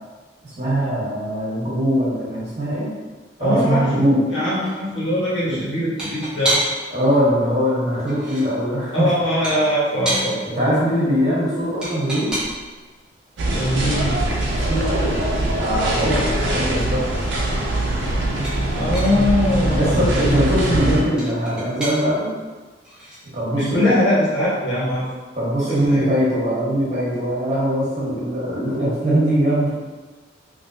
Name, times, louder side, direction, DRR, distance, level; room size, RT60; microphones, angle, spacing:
voice 1, 0.4-2.9 3.4-4.2 5.5-5.6 6.9-9.3 10.5-12.3 14.7-17.0 18.3-18.5 19.7-22.3 23.3-23.9 25.3-29.7, equal, 40° right, -8 dB, 1.2 m, -21 dB
voice 2, 3.4-3.9 4.3-6.6 8.9-10.6 13.5-14.2 18.7-20.1 23.5-25.0 25.7-26.1, left 1 dB, 80° left, -9 dB, 1.4 m, -21 dB
sound 1, 4.6-4.8 6.0-7.0 7.9-8.5 9.4-10.3 11.8-12.7 14.5-14.6 15.0-15.1 15.4-16.8 17.1-17.5 18.4-19.3 20.0-20.4 21.2-22.0 22.8-23.2, right 1 dB, 5° right, 0.8 m, -28 dB
sound 2, 13.4-21.0, right 1 dB, 70° right, 0.6 m, -22 dB
3.4 x 2.8 x 2.7 m, 1.3 s
head